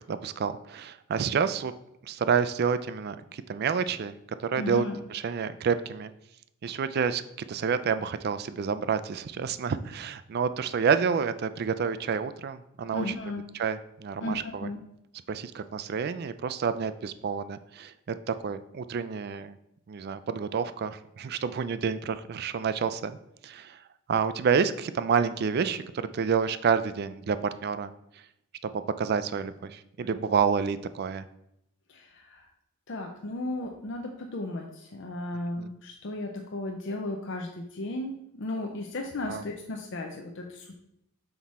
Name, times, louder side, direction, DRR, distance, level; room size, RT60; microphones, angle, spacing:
voice 1, 0.1-1.7 2.0-4.1 4.4-4.8 5.1-6.1 6.6-7.2 7.5-13.1 13.6-14.7 15.3-19.6 19.9-23.2 23.4-23.8 24.1-27.9 28.6-31.2 35.6-35.7 39.3-39.4, right 6 dB, 50° right, 12 dB, 0.3 m, -29 dB
voice 2, 4.6-5.0 12.9-13.4 14.2-14.8 31.9-32.5 32.9-40.8, left 2 dB, 60° left, 2 dB, 0.6 m, -35 dB
5.9 x 4.7 x 4.1 m, 0.80 s
head